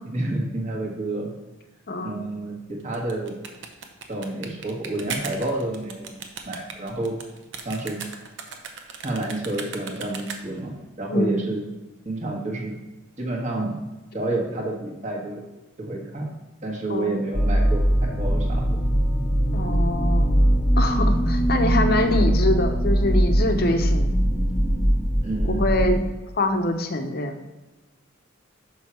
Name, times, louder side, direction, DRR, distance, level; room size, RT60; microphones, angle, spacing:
voice 1, 0.0-1.3 2.0-3.4 4.1-6.1 6.5-7.2 7.6-8.0 9.0-11.6 12.0-12.8 13.2-13.7 14.1-15.4 15.8-16.3 16.6-18.8 22.0-22.3 25.2-26.0, right 2 dB, 35° right, 0 dB, 1.3 m, -29 dB
voice 2, 1.9-2.2 11.1-11.4 16.9-17.2 19.5-20.5 20.8-24.2 25.4-26.0 26.4-27.4, left 1 dB, 50° left, 6 dB, 0.7 m, -24 dB
sound 1, 2.8-10.7, right 5 dB, 60° right, 0.8 m, -37 dB
sound 2, 17.3-25.9, equal, ahead, 0.7 m, -21 dB
6.2 x 5.4 x 4.4 m, 1.1 s
head